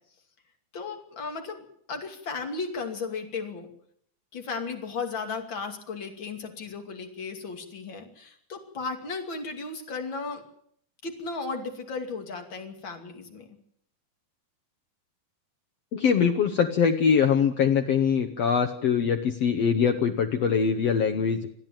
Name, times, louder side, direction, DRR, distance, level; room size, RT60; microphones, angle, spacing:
voice 1, 0.7-3.7 4.3-10.4 11.0-13.5, left 4 dB, 35° left, 4 dB, 2.9 m, -35 dB
voice 2, 15.9-21.4, left 7 dB, 75° left, 6 dB, 1.4 m, -23 dB
27.5 x 10.5 x 9.0 m, 0.66 s
omnidirectional pair, 4.4 m